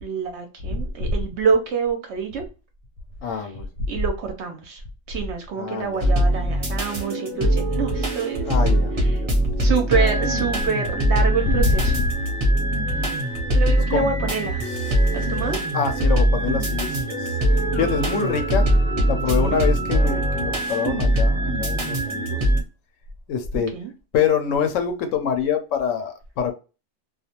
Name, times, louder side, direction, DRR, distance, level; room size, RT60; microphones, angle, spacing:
voice 1, 0.0-2.4 3.9-4.8 5.1-8.5 9.6-11.9 13.5-14.6 15.1-15.6 19.3-19.6 23.5-23.9, right 5 dB, 65° right, 0.8 m, -26 dB
voice 2, 3.2-3.7 5.6-6.1 8.4-8.9 9.2-9.4 9.7-9.8 11.4-12.1 13.8-14.1 15.7-17.4 17.8-18.7 19.1-22.4 23.3-23.7 24.1-26.5, left 6 dB, 70° left, 0.9 m, -25 dB
sound 1, 6.0-22.6, right 1 dB, 30° right, 0.6 m, -22 dB
2.4 x 2.2 x 2.7 m
omnidirectional pair, 1.4 m